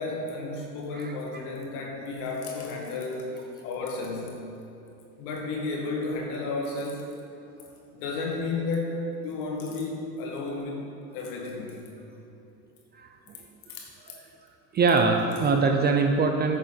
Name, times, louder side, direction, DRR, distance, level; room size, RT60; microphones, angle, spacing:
voice 1, 0.0-3.3 3.6-4.4 5.2-7.0 7.9-10.9 11.1-11.8 13.7-13.9, left 3 dB, 65° left, -1 dB, 2.1 m, -32 dB
voice 2, 14.7-16.6, right 4 dB, 20° right, 4 dB, 0.5 m, -22 dB
9.5 x 6.5 x 4.0 m, 2.8 s
hypercardioid pair, 95°, 48 cm